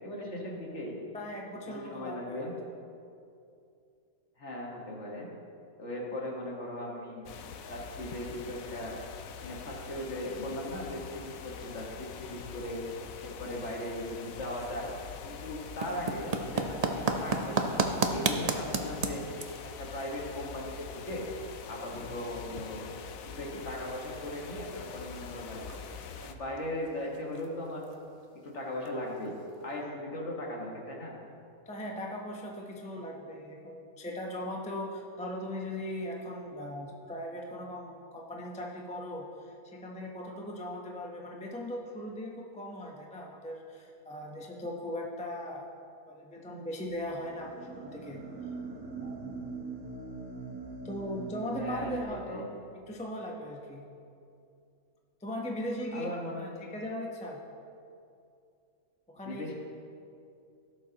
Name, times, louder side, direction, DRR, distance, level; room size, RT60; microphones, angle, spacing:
voice 1, 0.0-1.0 1.7-2.5 4.4-5.3 5.8-7.3 7.7-9.0 9.4-12.9 13.2-14.9 15.2-19.2 19.6-21.3 21.7-22.9 23.2-25.9 26.2-27.9 28.4-31.2 51.6-52.5 55.9-56.5 59.3-59.5, left 1 dB, 50° left, -2 dB, 1.7 m, -38 dB
voice 2, 1.1-2.5 31.7-45.7 46.1-48.2 49.0-49.4 50.8-52.5 52.7-53.8 55.2-56.1 56.4-57.4 59.1-59.5, left 1 dB, 5° left, -1 dB, 0.6 m, -39 dB
sound 1, 7.3-26.3, left 6 dB, 70° left, 1.0 m, -44 dB
sound 2, 15.5-29.8, right 4 dB, 60° right, 0.4 m, -37 dB
sound 3, 46.8-52.0, right 4 dB, 80° right, 1.5 m, -41 dB
17.0 x 7.0 x 2.9 m, 2.5 s
omnidirectional pair, 1.5 m